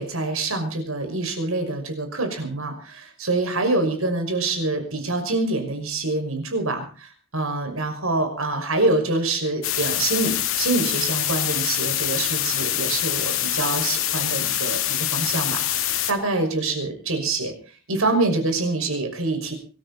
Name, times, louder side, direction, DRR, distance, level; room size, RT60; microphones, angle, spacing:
voice 1, 0.0-17.5 17.9-19.5, right 2 dB, 85° right, 5 dB, 6.0 m, -25 dB
sound 1, 9.6-16.1, left 12 dB, 80° left, 2.2 m, -25 dB
24.0 x 13.5 x 4.2 m, 0.38 s
head